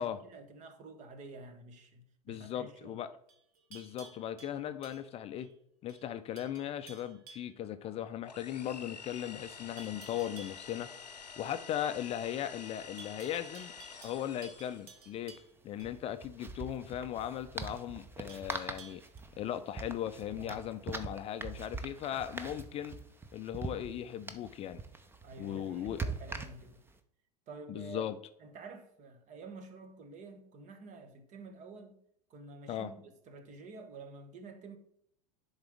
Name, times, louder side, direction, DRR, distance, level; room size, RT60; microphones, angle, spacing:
voice 1, 0.0-3.0 20.4-20.6 25.2-26.8 27.5-28.1 28.4-32.0 32.3-34.8, right 3 dB, 35° right, 1.2 m, -49 dB
voice 2, 2.3-3.1 3.7-5.5 5.8-10.9 11.4-13.7 14.0-15.3 15.6-19.0 19.4-23.0 23.3-24.8 25.4-26.0 27.7-28.2 32.7-32.9, left 11 dB, 30° left, 0.5 m, -38 dB
Livestock farm animals working animals, 3.3-5.5 5.9-6.1 6.4-7.6 9.8-10.6 13.0-15.9 18.3-19.2, right 5 dB, 65° right, 1.2 m, -55 dB
sound 1, 8.3-15.0, left 6 dB, 85° left, 0.8 m, -49 dB
sound 2, 13.8-13.9 14.1-14.2 15.7-26.9, right 3 dB, 10° right, 0.7 m, -43 dB
10.5 x 4.0 x 3.4 m
figure-of-eight pair, 85°, 21 cm